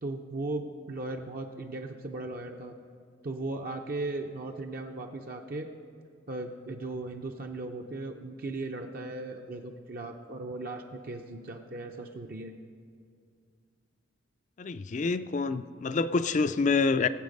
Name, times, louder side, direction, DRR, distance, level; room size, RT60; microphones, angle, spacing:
voice 1, 0.0-2.7 3.2-5.7 6.3-12.5, right 2 dB, 50° right, 3 dB, 0.6 m, -37 dB
voice 2, 14.6-17.1, left 4 dB, 40° left, 13 dB, 0.4 m, -27 dB
17.5 x 8.1 x 5.3 m, 2.3 s
head